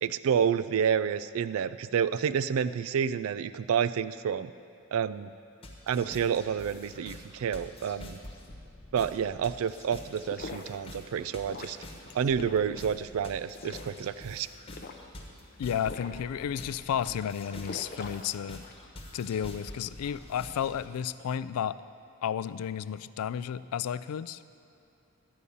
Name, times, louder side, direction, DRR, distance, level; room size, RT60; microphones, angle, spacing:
voice 1, 0.0-4.5 4.9-5.3 5.9-8.2 8.9-11.8 12.1-14.5, right 7 dB, 70° right, 14 dB, 0.3 m, -29 dB
sound 1, 5.6-20.9, left 1 dB, 25° left, 1.2 m, -47 dB
sound 2, 10.1-18.9, left 3 dB, 45° left, 0.6 m, -45 dB
voice 2, 15.6-18.6 19.1-21.8 22.2-24.5, left 8 dB, 85° left, 16 dB, 0.3 m, -32 dB
11.0 x 5.4 x 8.4 m, 2.7 s
head